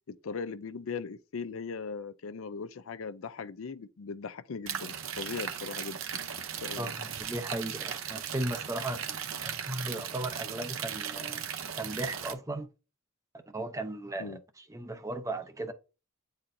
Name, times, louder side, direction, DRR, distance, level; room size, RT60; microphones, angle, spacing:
voice 1, 0.2-6.0 6.5-6.9 14.2-14.4, left 5 dB, 65° left, 0.5 m, -39 dB
sound 1, 4.7-12.3, right 8 dB, 65° right, 0.7 m, -37 dB
voice 2, 6.8-11.5 11.8-12.7 13.5-15.7, right 1 dB, 15° right, 0.5 m, -36 dB
8.8 x 4.2 x 2.6 m
head